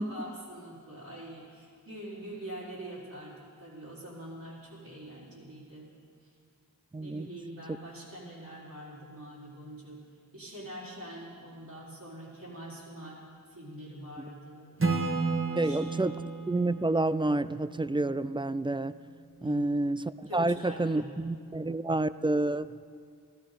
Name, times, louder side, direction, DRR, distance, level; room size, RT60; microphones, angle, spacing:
voice 1, 0.0-5.9 6.2-6.3 7.0-10.1 10.3-14.8 15.5-15.8 19.4-19.9 20.2-21.2, right 1 dB, 70° right, -7 dB, 4.7 m, -44 dB
voice 2, 6.9-7.3 15.6-16.1 16.5-18.9 19.4-22.7, right 2 dB, 15° right, 15 dB, 0.4 m, -29 dB
Acoustic guitar / Strum, 14.8-18.4, right 3 dB, 35° right, 1.6 m, -33 dB
14.5 x 14.0 x 5.2 m, 2.2 s
cardioid pair, 40°, 36 cm